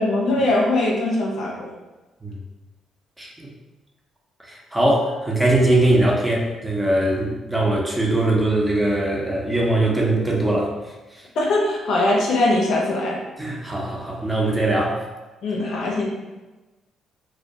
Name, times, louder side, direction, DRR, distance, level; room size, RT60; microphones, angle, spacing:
voice 1, 0.0-1.7 11.4-13.2 15.4-16.1, left 2 dB, 70° left, -2 dB, 0.5 m, -21 dB
voice 2, 3.2-3.5 4.5-10.7 13.4-15.0, right 1 dB, 15° right, -2 dB, 0.6 m, -21 dB
2.2 x 2.1 x 2.6 m, 1.1 s
hypercardioid pair, 50°, 0 cm